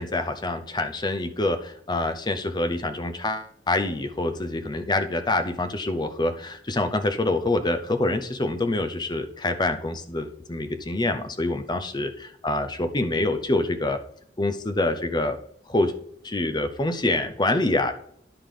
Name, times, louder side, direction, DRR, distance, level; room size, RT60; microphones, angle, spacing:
voice 1, 0.0-14.0 14.4-15.4 15.7-15.9 16.2-17.9, left 2 dB, 25° left, 7 dB, 0.7 m, -26 dB
10.5 x 5.1 x 3.8 m, 0.69 s
head